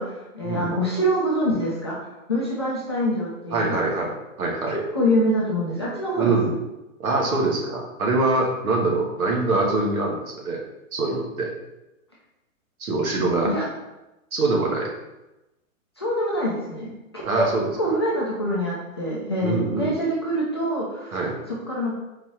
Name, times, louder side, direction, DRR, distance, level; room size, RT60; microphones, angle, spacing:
voice 1, 0.0-2.0 2.3-3.8 4.9-6.3 13.4-13.7 16.0-17.5 17.8-21.2 21.5-21.9, equal, 20° left, -7 dB, 0.4 m, -25 dB
voice 2, 3.5-4.8 6.2-6.6 7.0-10.6 10.9-11.5 12.8-13.5 14.3-14.9 17.2-17.7 19.4-20.0 21.1-21.4, right 3 dB, 80° right, -1 dB, 1.4 m, -24 dB
4.0 x 3.1 x 3.6 m, 0.98 s
hypercardioid pair, 160°, 42 cm